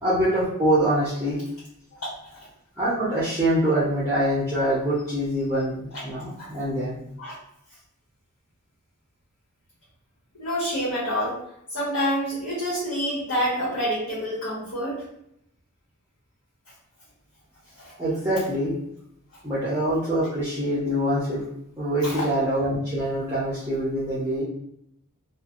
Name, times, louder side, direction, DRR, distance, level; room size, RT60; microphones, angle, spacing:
voice 1, 0.0-1.4 2.8-7.0 18.0-18.7 19.4-21.5 21.8-24.4, right 1 dB, 10° right, -9 dB, 0.6 m, -24 dB
voice 2, 10.4-11.4 11.7-15.0 17.7-17.9 22.0-22.3, equal, 65° left, -12 dB, 1.5 m, -27 dB
3.1 x 2.4 x 2.4 m, 0.75 s
head